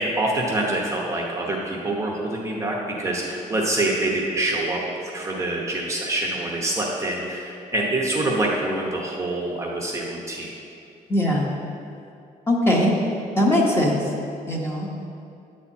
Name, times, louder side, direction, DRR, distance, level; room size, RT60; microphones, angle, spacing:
voice 1, 0.0-10.5, right 2 dB, 20° right, -2 dB, 0.8 m, -26 dB
voice 2, 11.1-11.5 12.5-13.0 13.4-14.0 14.5-14.9, left 1 dB, 15° left, -2 dB, 1.1 m, -20 dB
9.4 x 4.3 x 7.2 m, 2.5 s
cardioid pair, 175°, 15 cm